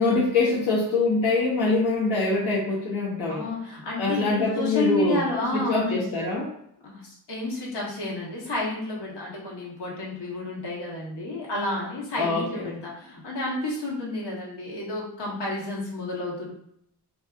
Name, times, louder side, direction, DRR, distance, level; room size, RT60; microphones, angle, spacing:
voice 1, 0.0-3.5 4.0-5.2 5.5-6.5 12.2-12.8, left 3 dB, 75° left, -7 dB, 1.0 m, -24 dB
voice 2, 3.3-6.1 6.8-16.5, left 2 dB, 90° left, -4 dB, 1.2 m, -30 dB
4.0 x 2.6 x 2.4 m, 0.73 s
wide cardioid pair, 140°, 40 cm